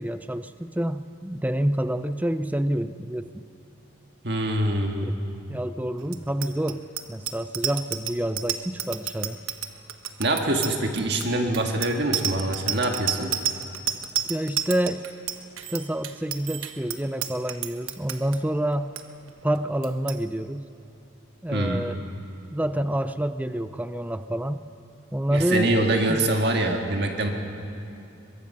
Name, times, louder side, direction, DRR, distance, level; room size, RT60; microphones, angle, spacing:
voice 1, 0.0-3.5 5.1-5.2 5.5-6.8 7.1-9.4 14.3-15.0 15.7-18.9 19.4-20.7 21.4-22.0 22.5-24.6 25.1-25.8 26.1-26.3, right 1 dB, 10° right, 11 dB, 0.4 m, -28 dB
voice 2, 4.2-5.1 10.2-13.3 21.5-21.8 25.3-27.3, right 1 dB, 55° right, 3 dB, 1.7 m, -24 dB
Bicycle bell, 6.1-18.4 18.7-19.0 19.3-19.6 19.8-20.2, right 10 dB, 85° right, 1.1 m, -31 dB
22.5 x 22.5 x 5.6 m, 2.8 s
head